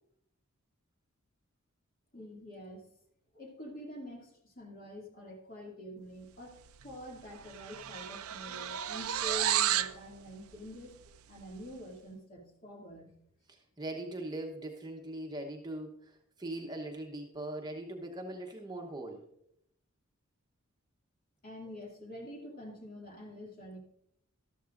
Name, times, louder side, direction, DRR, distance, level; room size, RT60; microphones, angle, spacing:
voice 1, 2.1-2.8 3.3-6.6 6.8-11.0 11.3-13.2 21.4-23.8, left 1 dB, 45° left, -1 dB, 2.4 m, -46 dB
sound 1, 6.8-7.0 7.3-10.0, right 11 dB, 85° right, 0.5 m, -32 dB
voice 2, 13.5-19.2, right 1 dB, 20° right, 2 dB, 1.0 m, -41 dB
13.0 x 12.5 x 2.6 m, 0.72 s
head